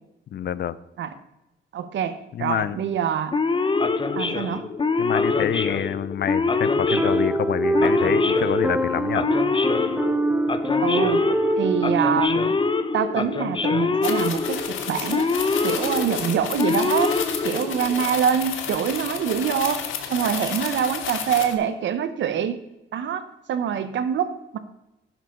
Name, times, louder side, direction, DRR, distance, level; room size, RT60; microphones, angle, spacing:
voice 1, 0.3-0.8 2.3-2.8 5.0-9.3, left 10 dB, 55° left, 17 dB, 0.6 m, -27 dB
voice 2, 1.7-3.3 4.1-4.7 10.8-11.3 11.5-12.6 12.9-15.3 15.6-17.1 17.4-19.8 20.1-22.6 22.9-23.2 23.5-24.6, right 8 dB, 70° right, 11 dB, 1.1 m, -25 dB
Male speech man speaking / Siren, 3.3-18.0, left 4 dB, 25° left, 0.9 m, -24 dB
sound 1, 6.9-12.2, right 2 dB, 5° right, 0.8 m, -24 dB
sound 2, 14.0-21.5, left 8 dB, 85° left, 1.7 m, -31 dB
11.5 x 10.5 x 3.9 m, 0.94 s
cardioid pair, 90°, 20 cm